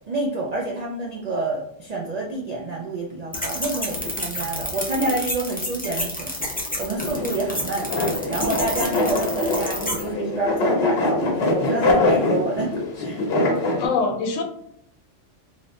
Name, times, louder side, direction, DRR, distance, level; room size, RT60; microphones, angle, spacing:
voice 1, 0.1-6.3 6.8-7.9 8.3-13.3, right 2 dB, 70° right, -2 dB, 0.4 m, -28 dB
sound 1, 3.3-10.0, left 1 dB, 15° left, 0.4 m, -30 dB
sound 2, 7.0-13.9, left 2 dB, 60° left, 1.0 m, -23 dB
voice 2, 13.8-14.4, left 4 dB, 90° left, 4 dB, 1.0 m, -23 dB
3.3 x 2.6 x 2.5 m, 0.71 s
omnidirectional pair, 1.3 m